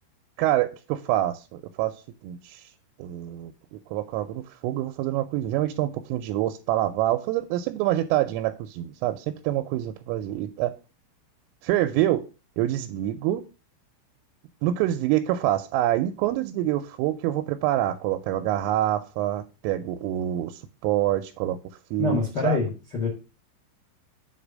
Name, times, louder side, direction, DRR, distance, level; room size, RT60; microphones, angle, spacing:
voice 1, 0.4-2.7 3.0-10.8 11.6-12.3 12.6-13.4 14.6-21.6 21.9-22.6, right 13 dB, 90° right, 6 dB, 3.1 m, -26 dB
voice 2, 22.0-23.1, left 4 dB, 65° left, -3 dB, 1.0 m, -26 dB
7.7 x 3.3 x 6.2 m, 0.33 s
omnidirectional pair, 5.7 m